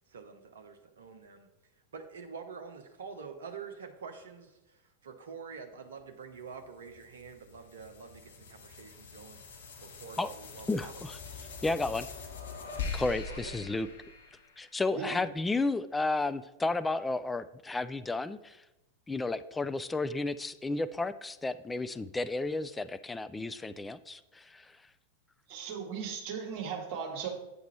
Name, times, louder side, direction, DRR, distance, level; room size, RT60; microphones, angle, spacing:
voice 1, 0.1-1.5 1.9-9.4 9.8-10.9 13.3-13.5, right 5 dB, 60° right, 5 dB, 0.7 m, -46 dB
sound 1, 6.4-15.0, left 5 dB, 60° left, 1.2 m, -43 dB
voice 2, 10.7-11.2 11.6-12.1 12.9-13.9 14.6-18.6 19.1-24.8, left 3 dB, 10° left, 13 dB, 0.3 m, -32 dB
voice 3, 25.5-27.3, right 6 dB, 40° right, 2 dB, 1.8 m, -37 dB
8.5 x 5.9 x 4.3 m, 0.95 s
figure-of-eight pair, 90°, 0 cm